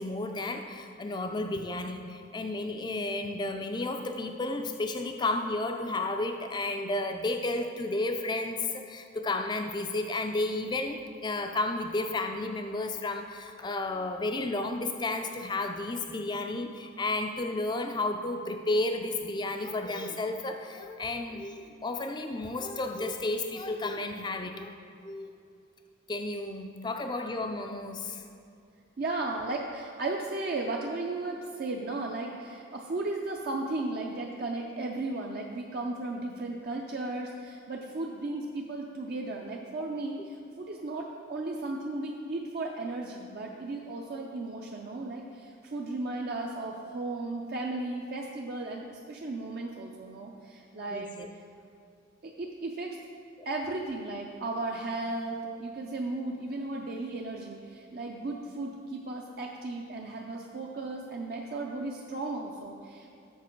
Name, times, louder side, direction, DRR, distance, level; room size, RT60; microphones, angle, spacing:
voice 1, 0.0-24.7 25.0-25.3 26.1-28.2 50.9-51.3 53.4-53.5, left 2 dB, 20° left, 5 dB, 0.3 m, -32 dB
voice 2, 29.0-51.2 52.2-53.0 53.5-63.1, right 2 dB, 50° right, 0 dB, 0.4 m, -35 dB
7.4 x 5.6 x 4.4 m, 2.5 s
head